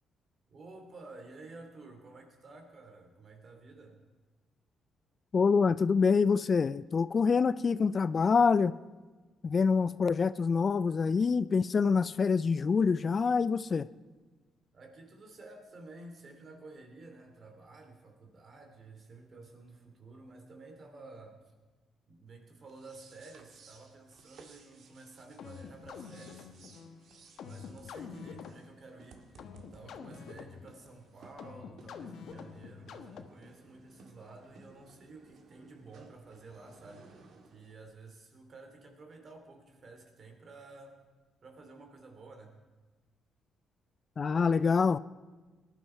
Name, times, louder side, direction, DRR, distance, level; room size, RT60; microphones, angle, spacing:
voice 1, 0.5-4.0 14.7-21.4 22.1-26.5 27.4-41.0 41.4-42.5, right 3 dB, 45° right, 5 dB, 2.9 m, -52 dB
voice 2, 5.3-8.7 9.4-13.9 44.2-45.0, left 5 dB, 40° left, 16 dB, 0.4 m, -26 dB
sound 1, 22.6-37.9, right 4 dB, 65° right, 1.8 m, -59 dB
sound 2, 25.4-33.6, left 6 dB, 70° left, 1.1 m, -48 dB
18.5 x 11.5 x 4.6 m, 1.3 s
cardioid pair, 90°, 0 cm